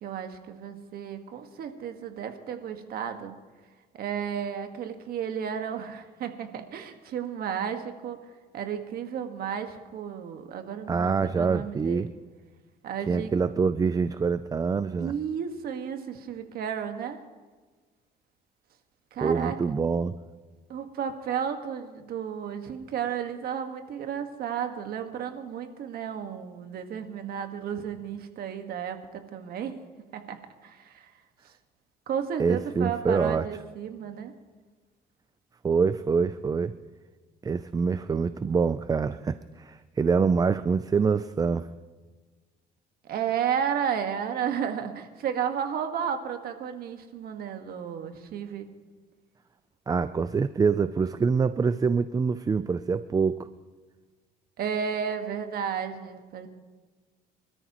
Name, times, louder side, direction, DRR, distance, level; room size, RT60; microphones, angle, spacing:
voice 1, 0.0-3.3 3.9-8.2 8.5-12.1 12.8-13.3 15.0-17.2 19.1-19.5 20.7-29.7 30.1-30.4 30.6-31.1 32.1-34.3 43.0-48.7 54.6-56.5, right 8 dB, 65° right, 6 dB, 1.6 m, -33 dB
voice 2, 10.9-12.1 13.1-15.1 19.2-20.1 32.4-33.5 35.6-36.7 37.4-41.7 49.9-53.5, right 5 dB, 20° right, 13 dB, 0.4 m, -25 dB
25.5 x 13.0 x 3.0 m, 1.4 s
cardioid pair, 110°, 17 cm